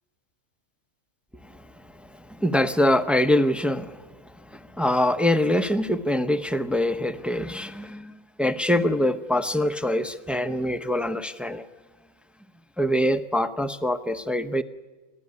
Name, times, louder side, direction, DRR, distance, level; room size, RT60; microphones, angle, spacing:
voice 1, 2.1-4.0 4.5-11.7 12.8-14.6, left 1 dB, ahead, 10 dB, 0.5 m, -24 dB
29.0 x 13.5 x 9.6 m, 1.3 s
omnidirectional pair, 1.4 m